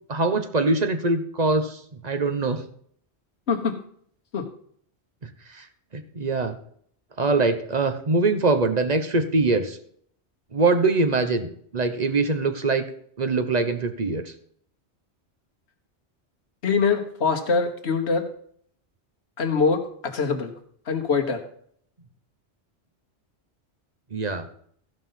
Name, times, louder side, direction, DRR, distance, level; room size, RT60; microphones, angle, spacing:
voice 1, 0.1-2.6 5.5-5.7 5.9-6.5 7.2-9.8 10.5-12.8 13.2-14.3 24.1-24.5, right 3 dB, 40° right, 8 dB, 1.0 m, -23 dB
voice 2, 16.6-18.3 19.4-20.5 20.9-21.4, left 5 dB, 75° left, 4 dB, 1.6 m, -23 dB
14.5 x 5.4 x 5.6 m, 0.62 s
omnidirectional pair, 1.1 m